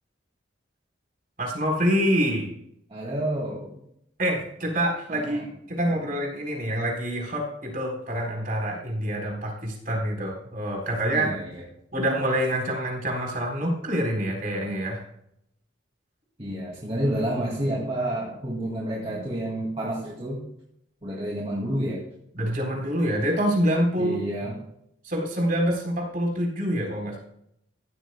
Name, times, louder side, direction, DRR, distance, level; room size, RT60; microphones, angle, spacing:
voice 1, 1.4-2.5 4.2-11.3 11.9-15.0 22.4-24.2 25.0-27.2, equal, 45° right, 0 dB, 3.9 m, -26 dB
voice 2, 2.9-3.7 5.1-5.4 5.8-6.0 11.1-11.6 16.4-20.4 21.0-22.0 24.0-24.6, right 1 dB, 30° right, -3 dB, 2.2 m, -29 dB
15.5 x 13.0 x 2.2 m, 0.74 s
head